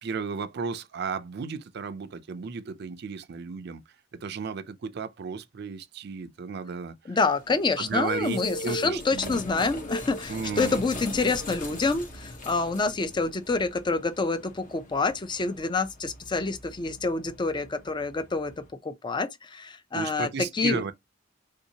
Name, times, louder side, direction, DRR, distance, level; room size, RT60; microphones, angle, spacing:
voice 1, 0.0-3.8 4.1-7.2 7.8-9.4 10.3-10.8 19.9-20.9, right 5 dB, 55° right, 0.4 m, -34 dB
voice 2, 7.1-18.5 18.8-20.3 20.5-20.8, left 3 dB, 25° left, 0.4 m, -27 dB
sound 1, 7.3-18.7, left 1 dB, 40° left, 0.8 m, -41 dB
3.5 x 2.7 x 2.7 m
head